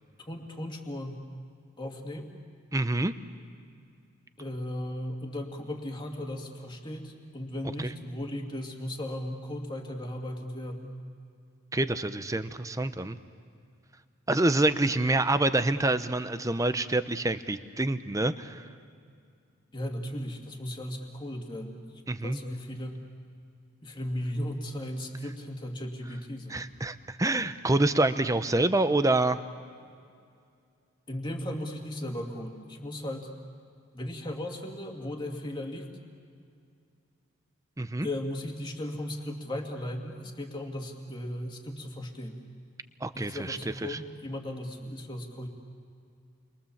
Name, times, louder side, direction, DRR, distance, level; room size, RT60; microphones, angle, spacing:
voice 1, 0.2-1.3 1.8-2.3 4.4-11.0 19.7-21.8 22.2-23.0 23.8-26.6 31.1-33.3 33.9-35.9 38.0-42.4 43.1-45.5, left 1 dB, 20° left, 1 dB, 2.2 m, -36 dB
voice 2, 2.7-3.1 7.8-7.9 11.7-13.2 14.3-18.7 22.1-22.4 26.5-29.4 37.8-38.1 43.0-44.0, right 2 dB, 15° right, 11 dB, 0.7 m, -27 dB
29.5 x 23.0 x 7.2 m, 2.4 s
head